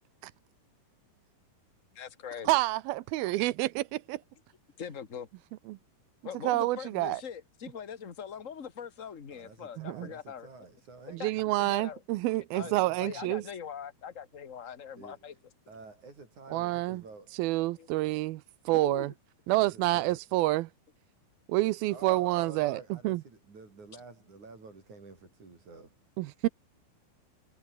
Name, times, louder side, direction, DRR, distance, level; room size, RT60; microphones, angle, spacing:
voice 1, 1.9-2.6 4.8-5.3 6.2-10.5 11.2-11.3 11.6-12.0 12.5-12.7 13.0-15.3 17.7-17.9 18.7-19.1, left 7 dB, 45° left, 0.9 m, -42 dB
voice 2, 2.5-4.2 5.7-5.8 6.4-7.2 9.8-10.1 11.1-13.4 16.5-17.0 17.4-19.1 19.5-20.7 21.5-23.2 26.2-26.5, right 18 dB, 80° right, 2.5 m, -28 dB
voice 3, 9.3-11.7 12.6-13.4 15.0-15.4 15.7-17.3 19.5-20.2 21.9-26.0, right 4 dB, 50° right, 8.1 m, -50 dB
omnidirectional pair, 4.3 m